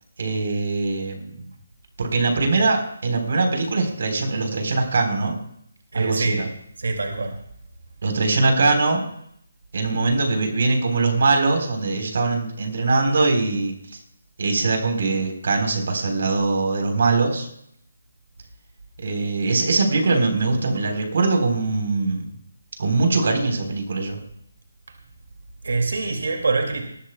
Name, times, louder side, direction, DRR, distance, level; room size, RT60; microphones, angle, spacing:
voice 1, 0.2-1.4 2.0-5.4 5.9-6.5 8.0-9.1 9.7-14.0 14.4-17.5 19.0-22.3 22.8-24.2, right 3 dB, 60° right, 4 dB, 3.8 m, -22 dB
voice 2, 5.9-6.4 6.8-7.4 25.6-26.8, right 3 dB, 75° right, 3 dB, 2.2 m, -24 dB
20.0 x 13.5 x 2.2 m, 0.70 s
hypercardioid pair, 165°, 0 cm